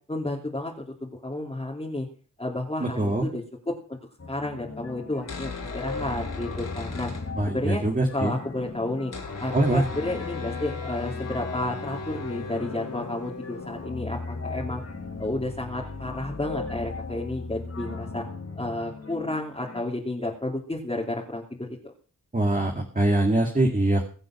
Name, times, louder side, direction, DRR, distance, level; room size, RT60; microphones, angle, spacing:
voice 1, 0.1-2.1 2.4-4.0 4.3-7.1 7.5-7.8 8.1-9.1 9.4-14.8 15.2-18.2 18.6-21.9, left 2 dB, 15° left, -3 dB, 2.8 m, -31 dB
voice 2, 2.8-3.3 7.4-8.3 9.5-9.8 22.3-24.1, right 2 dB, 25° right, 2 dB, 2.2 m, -23 dB
sound 1, 4.2-19.8, left 3 dB, 45° left, 3.7 m, -37 dB
sound 2, 5.2-7.9 8.1-8.2 8.4-17.8, left 4 dB, 65° left, 4.1 m, -40 dB
23.0 x 7.9 x 6.0 m, 0.42 s
wide cardioid pair, 120°, 33 cm